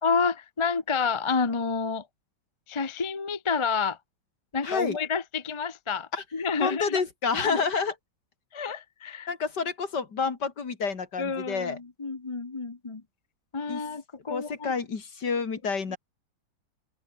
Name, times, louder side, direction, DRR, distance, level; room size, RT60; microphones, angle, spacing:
voice 1, 0.0-2.1 2.7-4.0 4.5-7.0 7.4-7.8 8.5-9.3 11.2-13.0 13.5-14.7 15.9-16.0, left 5 dB, 25° left, 0.6 m, -29 dB
voice 2, 4.6-5.0 6.1-6.2 6.6-7.9 9.3-11.8 13.7-13.8 14.3-16.0, left 5 dB, 55° left, 3.1 m, -29 dB
open air
omnidirectional pair, 2.2 m